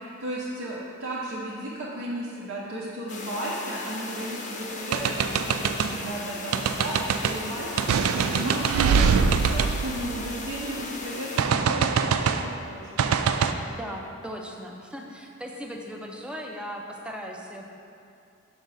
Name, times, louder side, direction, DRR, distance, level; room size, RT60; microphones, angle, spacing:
voice 1, 0.2-13.1, right 1 dB, 70° right, -7 dB, 0.8 m, -34 dB
sound 1, 3.1-11.4, left 3 dB, 35° left, 0.6 m, -37 dB
sound 2, 4.9-5.9 6.5-7.4 7.8-10.7 11.4-12.5 13.0-13.5, right 6 dB, 85° right, 0.3 m, -23 dB
voice 2, 13.7-17.6, equal, 5° right, 1 dB, 0.5 m, -38 dB
6.0 x 5.4 x 4.0 m, 2.6 s
head